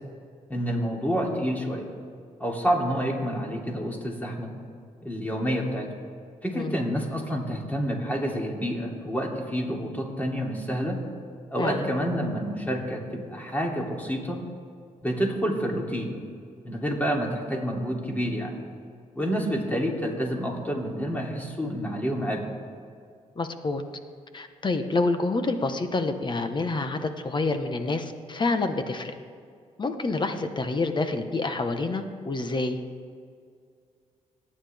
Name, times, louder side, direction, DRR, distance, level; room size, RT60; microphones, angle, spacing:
voice 1, 0.5-1.9 2.4-4.5 5.0-5.9 6.4-11.0 11.5-14.4 15.0-16.1 16.6-18.6 19.1-22.4, equal, 10° left, -1 dB, 3.2 m, -28 dB
voice 2, 23.3-23.8 24.3-29.1 29.8-32.8, left 3 dB, 35° left, 8 dB, 1.3 m, -27 dB
26.0 x 9.9 x 3.6 m, 2.2 s
cardioid pair, 75°, 13 cm